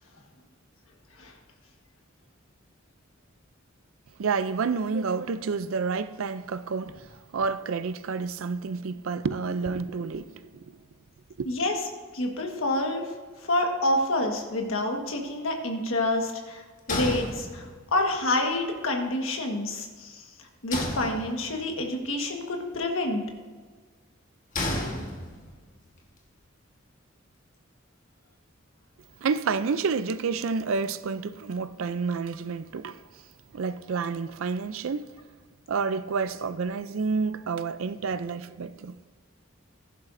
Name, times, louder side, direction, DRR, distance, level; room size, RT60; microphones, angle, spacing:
voice 1, 4.2-10.6 11.4-11.5 29.2-33.0 33.5-35.1 35.7-39.0, right 5 dB, 80° right, 0.5 m, -29 dB
voice 2, 12.1-13.0 13.5-16.6 16.9-17.7 17.9-20.2 20.6-23.2, left 1 dB, 80° left, 1.5 m, -27 dB
sound 1, 16.9-18.0 20.7-21.7 24.5-25.7, left 1 dB, 40° left, 1.4 m, -32 dB
15.0 x 11.0 x 2.6 m
head